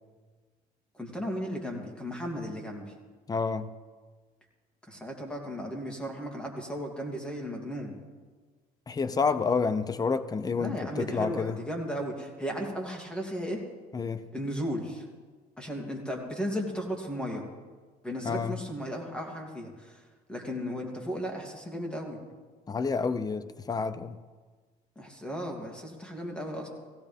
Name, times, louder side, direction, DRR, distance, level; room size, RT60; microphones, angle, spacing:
voice 1, 0.9-2.9 4.8-8.0 10.6-13.6 14.3-15.0 15.6-17.4 18.0-20.0 20.3-22.2 25.0-26.7, equal, 5° left, 0 dB, 2.8 m, -35 dB
voice 2, 3.3-3.7 8.9-11.6 13.9-14.2 18.2-18.6 22.7-24.2, left 5 dB, 20° left, 12 dB, 0.7 m, -29 dB
17.5 x 16.5 x 3.6 m, 1.4 s
cardioid pair, 110°, 17 cm